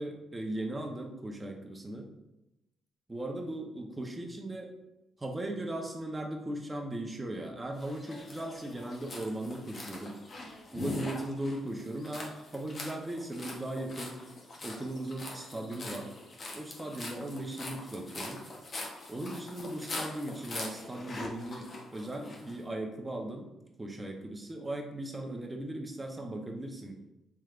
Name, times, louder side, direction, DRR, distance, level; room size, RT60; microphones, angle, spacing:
voice 1, 0.0-2.1 3.1-4.7 5.2-10.1 10.7-14.2 14.6-16.1 16.5-18.4 19.1-23.5 23.8-27.0, right 1 dB, 15° right, 1 dB, 0.7 m, -38 dB
sound 1, 7.8-22.5, left 2 dB, 45° left, 0.8 m, -43 dB
4.5 x 3.2 x 2.4 m, 0.91 s
cardioid pair, 90°, 0 cm